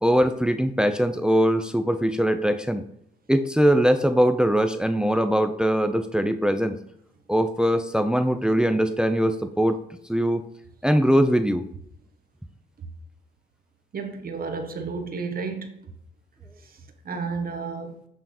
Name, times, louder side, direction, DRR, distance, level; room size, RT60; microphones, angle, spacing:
voice 1, 0.0-2.8 3.3-6.8 7.3-9.8 10.1-10.4 10.8-11.7, equal, 5° right, 0.5 m, -21 dB
voice 2, 13.9-15.7 17.0-17.9, right 4 dB, 45° right, 1.4 m, -31 dB
8.7 x 3.6 x 5.3 m
cardioid pair, 90°, 20 cm